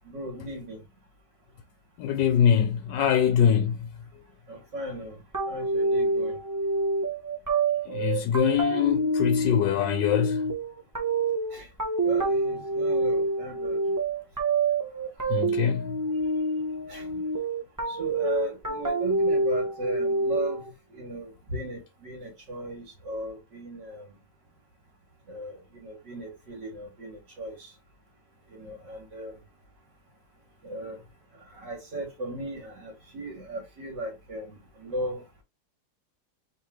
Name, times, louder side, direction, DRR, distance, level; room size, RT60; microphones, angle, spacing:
voice 1, 0.1-0.8 4.5-5.2 5.5-6.4 11.5-11.7 12.0-13.8 16.9-17.0 17.9-20.6 20.9-24.1 25.3-27.5 28.5-29.3 30.6-31.0 31.6-34.5 34.8-35.2, right 1 dB, 75° right, 2.8 m, -36 dB
voice 2, 2.0-3.9 7.9-10.4 15.3-15.9, left 8 dB, 80° left, 1.3 m, -23 dB
sound 1, 5.3-20.7, right 2 dB, 25° right, 0.4 m, -27 dB
4.4 x 3.1 x 3.1 m
omnidirectional pair, 1.9 m